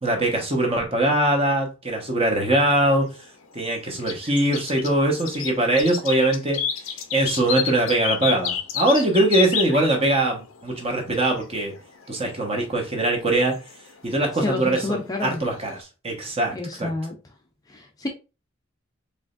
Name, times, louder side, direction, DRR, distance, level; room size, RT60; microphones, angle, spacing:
voice 1, 0.0-3.1 3.5-6.6 7.1-11.7 12.1-13.6 14.0-16.9, right 1 dB, 30° right, 1.2 m, -22 dB
sound 1, 3.1-15.8, left 8 dB, 80° left, 0.6 m, -31 dB
voice 2, 14.4-15.4 16.5-17.1 17.7-18.1, left 2 dB, 20° left, 0.6 m, -29 dB
4.8 x 3.3 x 2.5 m
head